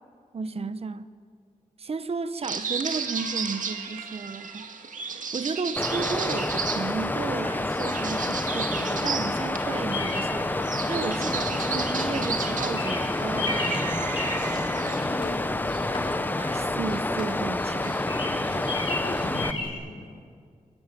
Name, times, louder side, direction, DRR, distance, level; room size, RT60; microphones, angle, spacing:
voice 1, 0.3-1.1 1.8-4.7 5.3-13.9 16.4-18.0 18.5-18.7, right 4 dB, 45° right, 1.0 m, -33 dB
sound 1, 2.4-15.0, right 5 dB, 75° right, 2.1 m, -34 dB
Water, 5.8-19.5, left 2 dB, 15° left, 0.7 m, -29 dB
Bird vocalization bird call bird song, 9.6-19.7, left 2 dB, 40° left, 5.0 m, -35 dB
voice 2, 14.5-16.2 18.9-20.2, left 3 dB, 90° left, 5.3 m, -39 dB
23.0 x 19.5 x 9.2 m
wide cardioid pair, 150°, 14 cm